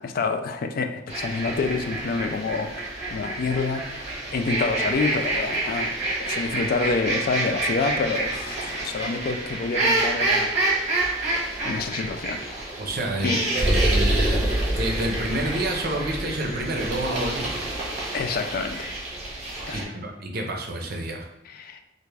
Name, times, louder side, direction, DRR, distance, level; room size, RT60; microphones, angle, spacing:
voice 1, 0.0-11.1 11.6-12.5 13.2-13.4 18.1-19.0 19.7-20.0 21.5-21.8, left 4 dB, 55° left, 6 dB, 0.3 m, -28 dB
sound 1, 1.1-19.8, right 2 dB, 40° right, 1.0 m, -27 dB
voice 2, 12.8-17.8 19.7-21.3, right 1 dB, 55° right, 2 dB, 0.6 m, -29 dB
3.4 x 2.5 x 3.2 m, 0.85 s
head